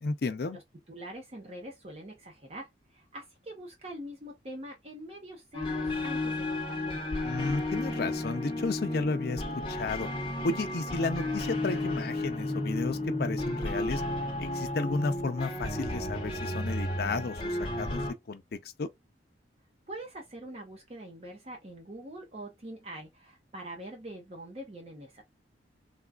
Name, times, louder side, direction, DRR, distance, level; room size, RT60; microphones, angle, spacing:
voice 1, 0.0-0.6 7.2-10.1 10.4-14.0 14.4-18.4 18.8-18.9, left 3 dB, 60° left, 0.5 m, -33 dB
voice 2, 0.9-7.1 19.9-25.2, right 1 dB, 35° right, 0.7 m, -44 dB
sound 1, 5.5-18.1, left 1 dB, 30° left, 0.9 m, -33 dB
3.4 x 2.3 x 2.3 m
head